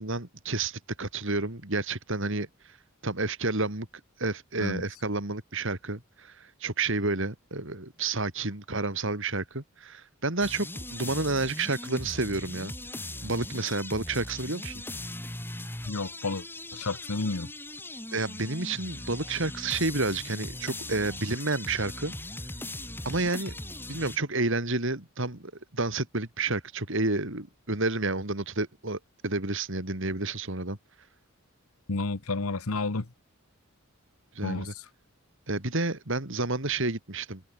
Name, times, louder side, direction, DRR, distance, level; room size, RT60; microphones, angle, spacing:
voice 1, 0.0-2.5 3.0-3.9 4.2-12.7 13.2-14.8 18.1-22.1 23.0-23.5 23.9-30.8 34.3-34.7 35.5-37.4, right 3 dB, 60° right, 3.2 m, -30 dB
sound 1, 10.4-24.2, left 1 dB, 10° left, 5.1 m, -39 dB
voice 2, 15.9-16.5 16.7-17.5 31.9-33.1 34.4-34.8, left 3 dB, 80° left, 1.2 m, -31 dB
head